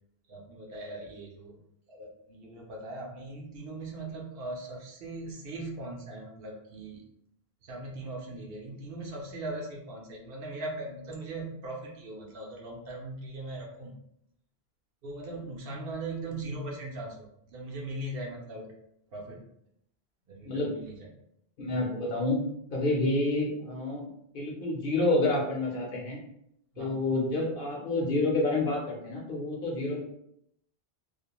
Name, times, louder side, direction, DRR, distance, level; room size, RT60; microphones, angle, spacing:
voice 1, 0.3-1.6 1.9-7.0 7.6-14.0 15.0-18.7 19.1-19.4 20.3-21.1 26.7-27.0, right 2 dB, 65° right, -1 dB, 0.8 m, -39 dB
voice 2, 21.6-22.4 22.7-24.1 24.3-26.2 26.8-30.0, left 2 dB, 60° left, -2 dB, 0.8 m, -28 dB
2.4 x 2.1 x 2.8 m, 0.75 s
omnidirectional pair, 1.1 m